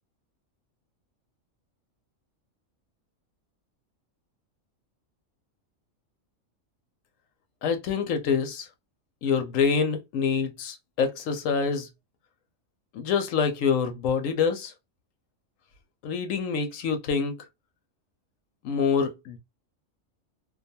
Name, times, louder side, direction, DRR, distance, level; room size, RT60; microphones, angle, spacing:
voice 1, 7.6-8.7 9.2-11.9 12.9-14.7 16.0-17.3 18.6-19.4, left 6 dB, 75° left, 1.0 m, -26 dB
2.5 x 2.3 x 2.6 m
omnidirectional pair, 1.4 m